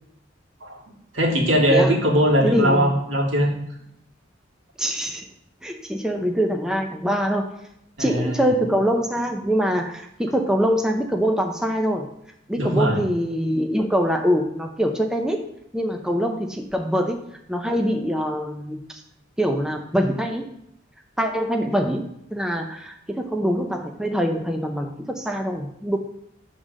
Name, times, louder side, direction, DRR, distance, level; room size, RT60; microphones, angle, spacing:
voice 1, 1.1-3.5 8.0-8.5 12.6-13.0, equal, 80° right, -2 dB, 1.8 m, -20 dB
voice 2, 2.4-3.0 4.8-5.3 5.6-7.5 8.0-12.1 12.5-15.5 15.7-17.2 17.5-19.0 19.4-20.5 21.2-26.0, equal, 5° right, 3 dB, 0.5 m, -24 dB
6.7 x 3.7 x 6.3 m, 0.76 s
head